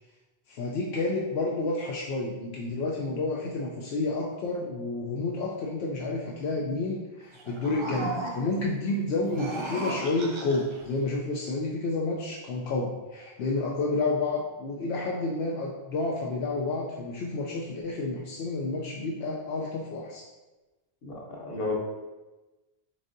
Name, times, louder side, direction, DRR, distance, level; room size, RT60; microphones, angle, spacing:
voice 1, 0.5-20.2, left 3 dB, 85° left, -3 dB, 0.8 m, -30 dB
sound 1, 7.3-8.7 9.2-10.8, right 1 dB, 35° right, 0.5 m, -35 dB
voice 2, 21.0-21.7, left 3 dB, 65° left, -3 dB, 1.2 m, -32 dB
7.2 x 2.6 x 2.6 m, 1.1 s
omnidirectional pair, 1.1 m